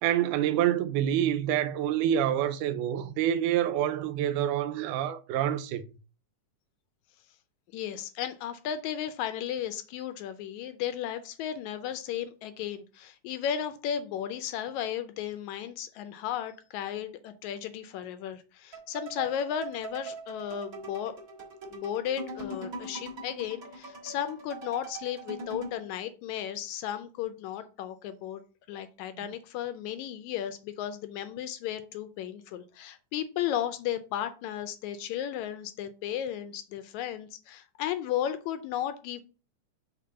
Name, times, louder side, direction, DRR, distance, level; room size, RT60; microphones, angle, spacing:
voice 1, 0.0-5.9, right 11 dB, 85° right, 2.1 m, -27 dB
voice 2, 7.7-21.1 21.7-28.4 28.7-39.2, left 10 dB, 80° left, 1.8 m, -34 dB
sound 1, 18.7-25.8, right 2 dB, 35° right, 1.5 m, -42 dB
6.8 x 3.5 x 5.5 m
omnidirectional pair, 3.6 m